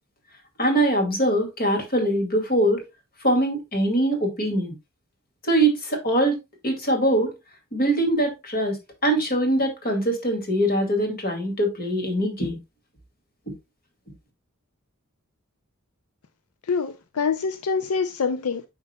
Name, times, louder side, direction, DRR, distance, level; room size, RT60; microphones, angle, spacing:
voice 1, 0.6-2.8 3.2-4.7 5.4-6.4 6.6-7.3 7.7-8.8 9.0-12.6, right 1 dB, 45° left, 2.2 m, -22 dB
voice 2, 16.7-18.7, left 5 dB, 80° left, 0.5 m, -25 dB
8.8 x 5.3 x 2.2 m
head